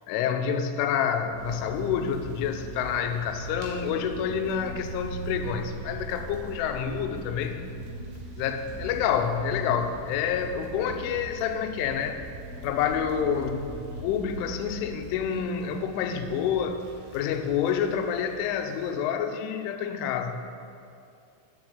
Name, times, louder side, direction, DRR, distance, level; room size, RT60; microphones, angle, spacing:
voice 1, 0.1-7.7 8.4-12.3 12.6-16.8 17.1-20.4, left 7 dB, 85° left, 7 dB, 3.2 m, -28 dB
sound 1, 1.3-15.4, right 1 dB, 35° right, 3.8 m, -41 dB
sound 2, 1.4-18.9, right 3 dB, 75° right, 3.7 m, -47 dB
10.5 x 7.0 x 7.8 m, 2.5 s
omnidirectional pair, 5.5 m